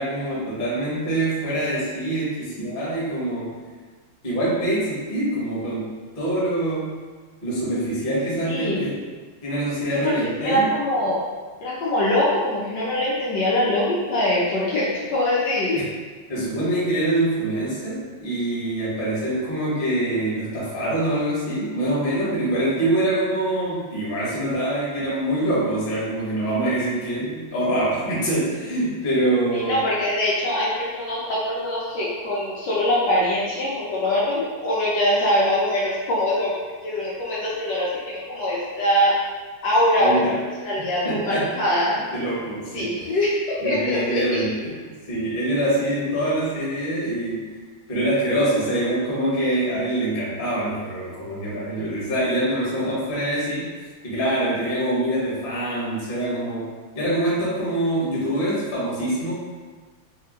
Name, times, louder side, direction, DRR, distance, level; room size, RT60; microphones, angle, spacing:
voice 1, 0.0-3.5 4.2-5.9 6.1-6.9 7.4-9.0 9.4-10.7 15.7-15.8 16.3-29.8 40.0-41.5 42.1-42.9 43.6-47.5 47.9-53.7 54.0-56.7 56.9-59.3, right 1 dB, 50° left, -7 dB, 0.6 m, -25 dB
voice 2, 8.4-8.9 9.9-11.2 11.6-14.8 15.1-15.8 29.5-36.5 36.8-39.1 39.6-40.2 40.6-42.0 42.7-44.4, left 1 dB, 70° left, -6 dB, 1.0 m, -23 dB
3.5 x 2.4 x 2.8 m, 1.4 s
omnidirectional pair, 2.2 m